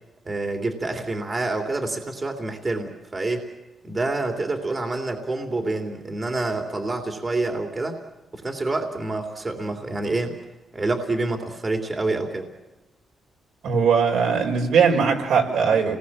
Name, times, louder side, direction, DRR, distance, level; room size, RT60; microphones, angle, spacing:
voice 1, 0.2-3.5 3.8-8.0 8.3-10.4 10.7-12.4, right 2 dB, 25° right, 4 dB, 3.0 m, -27 dB
voice 2, 13.6-16.0, right 6 dB, 75° right, 1 dB, 5.3 m, -20 dB
29.5 x 20.0 x 7.4 m, 1.1 s
cardioid pair, 130°, 0 cm